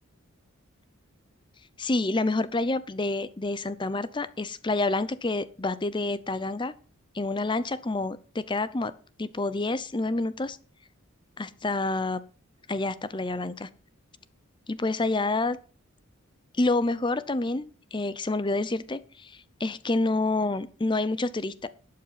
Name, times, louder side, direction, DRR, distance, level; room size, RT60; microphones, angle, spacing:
voice 1, 1.8-6.7 7.1-8.9 9.2-10.6 11.4-12.2 12.7-13.7 14.7-15.6 16.5-21.7, left 2 dB, 20° left, 16 dB, 0.6 m, -28 dB
12.5 x 8.5 x 5.8 m, 0.39 s
head